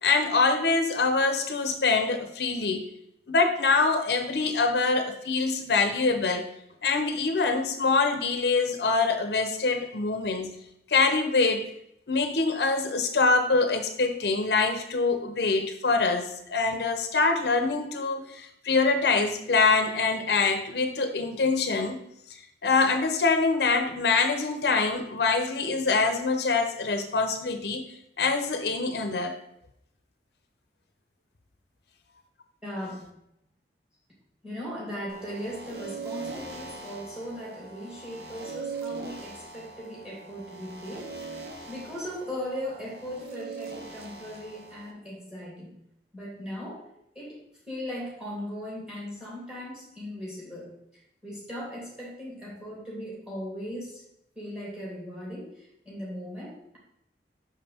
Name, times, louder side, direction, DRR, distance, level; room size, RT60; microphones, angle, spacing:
voice 1, 0.0-2.9 3.3-6.4 6.8-10.5 10.9-11.7 12.1-22.0 22.3-27.8 28.2-29.3, left 4 dB, 70° left, 6 dB, 0.6 m, -24 dB
voice 2, 32.6-33.1 34.4-45.8 46.1-46.9 47.1-47.4 47.7-50.7 51.2-54.0 54.3-56.8, equal, 5° right, -4 dB, 2.7 m, -38 dB
sound 1, 35.1-44.9, right 4 dB, 60° right, 1.1 m, -41 dB
6.1 x 5.4 x 4.2 m, 0.77 s
head